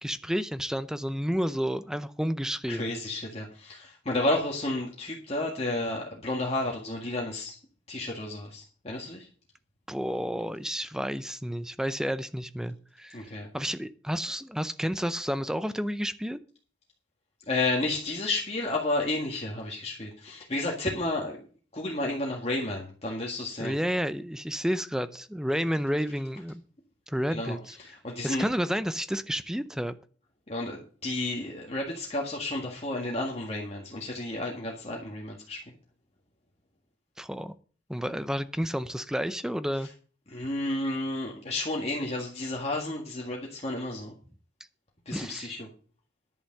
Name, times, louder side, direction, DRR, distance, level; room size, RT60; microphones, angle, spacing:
voice 1, 0.0-2.9 9.9-16.4 23.6-26.6 27.1-27.8 28.2-29.9 37.2-37.5 37.9-39.9 45.1-45.5, equal, 5° right, 13 dB, 0.5 m, -31 dB
voice 2, 2.7-7.6 7.9-9.3 13.1-13.5 17.5-21.4 21.7-23.8 27.3-28.4 30.5-35.6 40.3-44.1 45.1-45.7, left 2 dB, 35° left, -1 dB, 1.8 m, -31 dB
11.0 x 6.8 x 6.7 m, 0.41 s
head